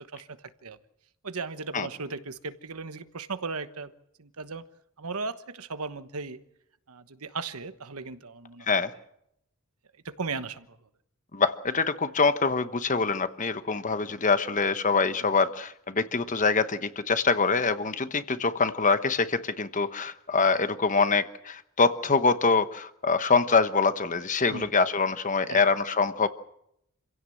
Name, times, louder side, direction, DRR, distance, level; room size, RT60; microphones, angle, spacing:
voice 1, 0.1-0.8 1.2-3.9 4.2-4.6 5.0-6.4 6.9-8.8 10.0-10.7 15.2-15.3 24.5-24.7 25.5-25.6, right 4 dB, 75° right, 11 dB, 1.2 m, -36 dB
voice 2, 11.3-26.3, left 4 dB, 35° left, 11 dB, 1.1 m, -25 dB
27.0 x 16.5 x 7.8 m, 0.79 s
head